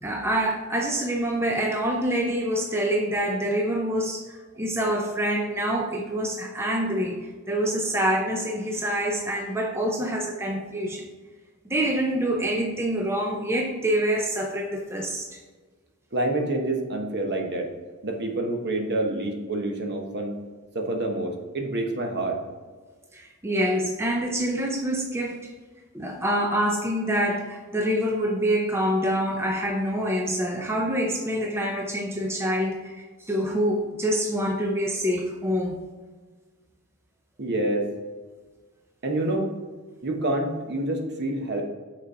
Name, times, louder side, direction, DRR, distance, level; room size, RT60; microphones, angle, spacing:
voice 1, 0.0-11.1 11.6-15.4 23.1-25.5 25.9-35.8, right 1 dB, 10° right, 1 dB, 0.5 m, -26 dB
voice 2, 16.1-17.7 18.0-20.4 20.7-22.4 37.4-37.9 39.0-39.5 40.0-41.7, right 2 dB, 50° right, 2 dB, 1.1 m, -27 dB
6.0 x 4.3 x 4.8 m, 1.4 s
head